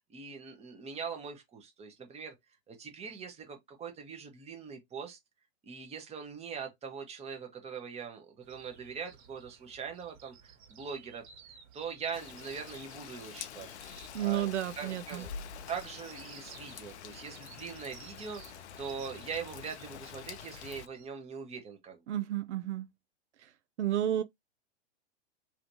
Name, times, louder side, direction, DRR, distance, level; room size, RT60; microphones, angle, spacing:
voice 1, 0.1-2.3 2.7-5.2 5.6-11.2 11.7-13.8 14.2-14.5 14.8-15.3 15.7-22.0, right 6 dB, 20° right, 1.3 m, -42 dB
sound 1, 8.4-21.1, right 7 dB, 45° right, 2.0 m, -56 dB
Rain, 12.1-20.9, left 8 dB, 75° left, 0.5 m, -47 dB
voice 2, 14.1-15.3 22.1-22.9 23.8-24.2, right 12 dB, 85° right, 0.6 m, -31 dB
3.1 x 3.1 x 2.7 m
hypercardioid pair, 125°, 34 cm